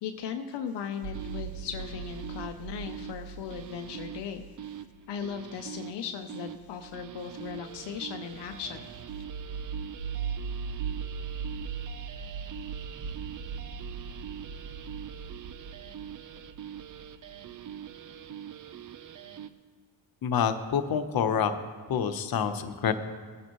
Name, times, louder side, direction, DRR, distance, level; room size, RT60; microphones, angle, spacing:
voice 1, 0.0-4.4 5.1-8.9, left 7 dB, 85° left, 6 dB, 0.8 m, -37 dB
sound 1, 1.0-19.5, right 7 dB, 50° right, 0.8 m, -39 dB
voice 2, 20.2-21.5 21.9-22.9, left 8 dB, 60° left, 9 dB, 1.0 m, -27 dB
19.5 x 9.7 x 3.1 m, 1.5 s
cardioid pair, 80°, 41 cm